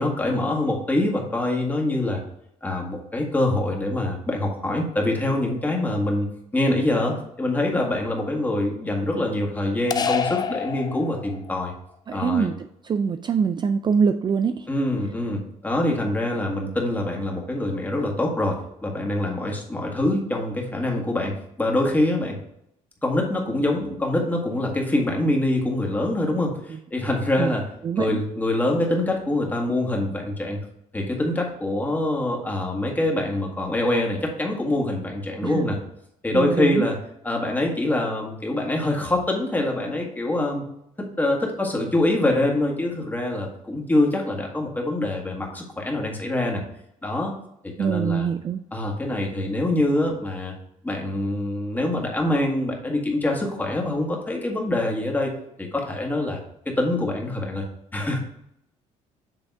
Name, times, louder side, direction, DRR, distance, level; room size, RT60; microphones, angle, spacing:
voice 1, 0.0-2.2 2.6-11.7 12.1-12.5 14.7-22.4 23.0-27.6 28.0-30.6 30.9-35.8 36.2-36.9 37.2-40.6 41.0-46.6 47.0-47.3 47.6-48.3 48.7-50.5 50.8-55.3 55.6-56.4 56.7-57.6 57.9-58.2, left 1 dB, 10° left, 0 dB, 1.8 m, -25 dB
sound 1, 9.9-11.6, left 6 dB, 30° left, 0.5 m, -27 dB
voice 2, 12.1-12.5 12.8-14.7 26.7-26.8 27.4-27.5 27.8-28.2 35.4-35.7 36.3-36.9 47.8-48.6, right 6 dB, 30° right, 10 dB, 0.3 m, -24 dB
8.0 x 3.4 x 4.7 m, 0.77 s
cardioid pair, 100°, 14 cm